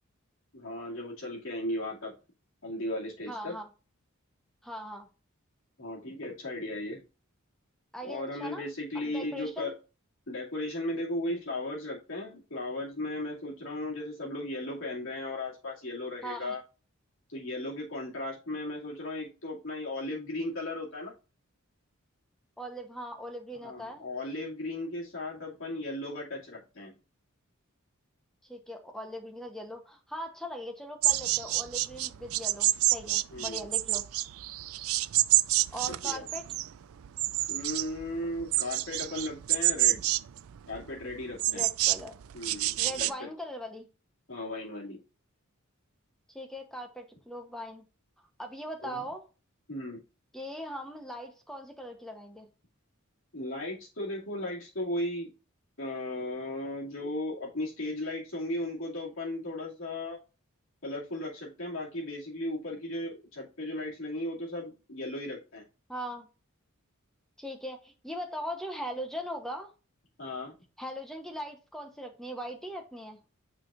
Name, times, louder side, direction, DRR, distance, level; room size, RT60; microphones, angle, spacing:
voice 1, 0.5-2.1 2.6-3.6 5.8-7.0 8.0-9.7 10.3-16.6 17.3-21.1 23.6-26.9 33.3-33.7 36.0-36.2 37.5-40.0 40.7-41.7 42.3-43.3 44.3-45.0 48.8-49.0 49.7-50.0 53.3-55.3 55.8-60.2 60.8-65.6 70.2-70.5, left 1 dB, 65° left, -4 dB, 2.4 m, -36 dB
voice 2, 3.3-3.7 4.6-5.1 7.9-8.6 8.9-9.7 16.2-16.6 22.6-24.0 28.4-34.0 35.7-36.4 41.5-42.2 42.8-43.9 46.3-47.8 48.4-49.2 50.3-52.5 65.9-66.3 67.4-69.7 70.8-73.2, equal, ahead, 4 dB, 0.9 m, -40 dB
sound 1, 31.0-43.1, right 16 dB, 75° right, 0.4 m, -28 dB
9.2 x 4.6 x 2.5 m, 0.32 s
head